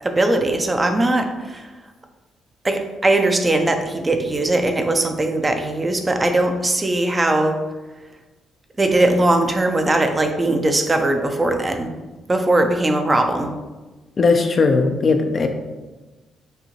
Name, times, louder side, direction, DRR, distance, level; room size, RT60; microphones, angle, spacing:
voice 1, 0.0-1.7 2.6-7.6 8.8-11.9 12.3-13.5, right 2 dB, 25° right, 5 dB, 0.5 m, -20 dB
voice 2, 14.2-15.5, left 4 dB, 40° left, 5 dB, 0.5 m, -17 dB
6.5 x 2.6 x 3.0 m, 1.2 s
cardioid pair, 90°, 0 cm